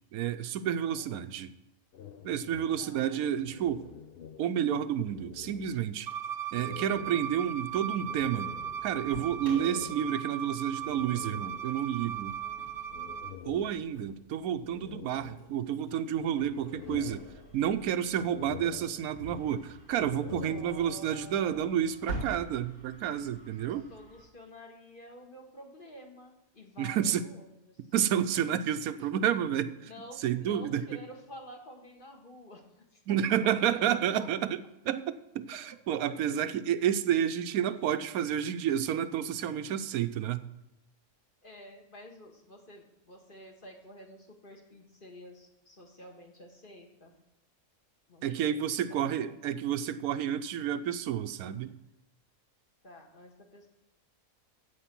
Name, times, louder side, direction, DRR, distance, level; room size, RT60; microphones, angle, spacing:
voice 1, 0.1-1.5 2.2-3.9 4.4-6.1 6.5-8.5 8.8-12.4 13.4-17.3 17.5-23.9 26.8-27.3 27.9-29.9 30.2-31.0 33.1-40.5 48.2-51.7, right 9 dB, 90° right, 11 dB, 1.1 m, -30 dB
voice 2, 0.8-1.1 2.8-3.2 12.0-13.5 20.4-21.9 23.9-27.8 29.9-33.0 33.4-34.3 41.4-47.1 48.1-48.6 48.9-49.4 52.8-53.7, equal, 40° left, 1 dB, 1.7 m, -50 dB
sound 1, 1.9-4.7 5.0-6.1 6.5-12.0 12.9-14.2 14.6-15.9 16.3-17.8 18.2-19.5 19.9-21.3, left 9 dB, 55° left, 0.7 m, -47 dB
Bowed string instrument, 6.1-13.3, right 9 dB, 50° right, 0.9 m, -38 dB
Engine starting, 7.3-24.2, right 1 dB, 85° left, 4.5 m, -49 dB
15.0 x 5.1 x 7.5 m, 0.91 s
omnidirectional pair, 1.5 m